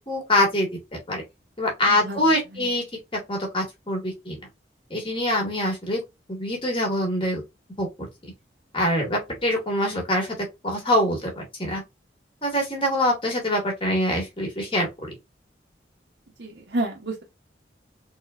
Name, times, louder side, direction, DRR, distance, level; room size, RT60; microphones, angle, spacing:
voice 1, 0.1-0.7 1.1-1.2 1.6-2.8 3.3-4.4 4.9-6.0 6.3-7.4 7.8-8.3 8.7-10.3 10.6-11.8 12.4-15.2, left 1 dB, 30° left, 1.8 m, -24 dB
voice 2, 1.9-2.7 16.4-17.2, right 2 dB, 70° right, 1.0 m, -31 dB
4.1 x 3.7 x 2.5 m
head